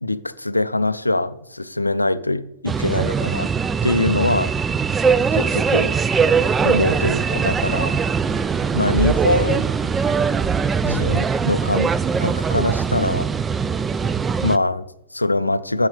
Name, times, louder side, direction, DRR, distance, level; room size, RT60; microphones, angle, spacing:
voice 1, 0.0-3.5 3.8-4.5 5.3-5.9 6.6-8.0 8.7-9.7 10.8-11.9 12.2-13.3 14.4-15.9, left 2 dB, 90° left, 0.4 m, -23 dB
sound 1, 2.7-14.6, right 6 dB, 20° right, 0.4 m, -21 dB
8.9 x 8.5 x 3.2 m
figure-of-eight pair, 95°, 0 cm